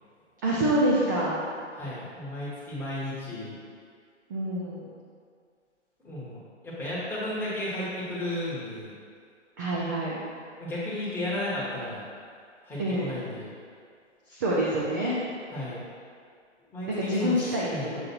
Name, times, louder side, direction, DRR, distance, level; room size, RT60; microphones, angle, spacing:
voice 1, 0.4-1.4 4.3-4.9 9.6-10.2 12.8-13.1 14.3-15.2 17.0-17.7, right 1 dB, 15° right, -6 dB, 0.5 m, -26 dB
voice 2, 1.7-3.6 6.0-6.4 6.6-8.9 10.6-12.0 12.6-13.5 15.5-15.8 16.7-17.3 17.7-18.0, left 1 dB, 5° left, -9 dB, 1.4 m, -33 dB
7.1 x 3.6 x 4.4 m, 2.2 s
figure-of-eight pair, 125°, 37 cm